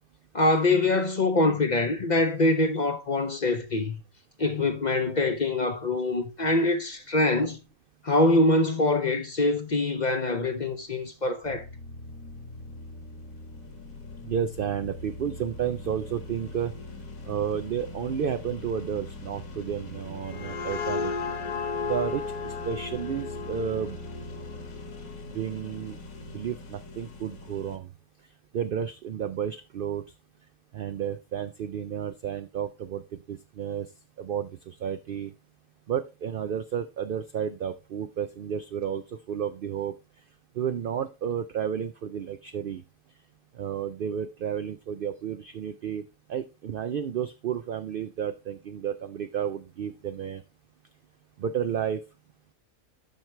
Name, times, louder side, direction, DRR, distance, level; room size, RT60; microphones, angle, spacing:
voice 1, 0.3-4.0 4.4-7.6 8.0-11.7, left 2 dB, 40° left, 0.7 m, -24 dB
sound 1, 11.4-27.8, left 2 dB, 70° left, 1.7 m, -42 dB
voice 2, 14.2-16.7 17.2-21.1 21.8-24.0 25.3-26.0 26.3-27.9 28.5-30.0 30.7-33.0 33.3-33.9 34.2-35.3 35.9-39.9 40.6-42.8 43.6-46.0 46.3-50.4 51.4-52.0, right 8 dB, 70° right, 0.5 m, -31 dB
sound 2, 20.0-25.5, left 5 dB, 90° left, 1.4 m, -34 dB
12.0 x 4.5 x 3.2 m
omnidirectional pair, 1.5 m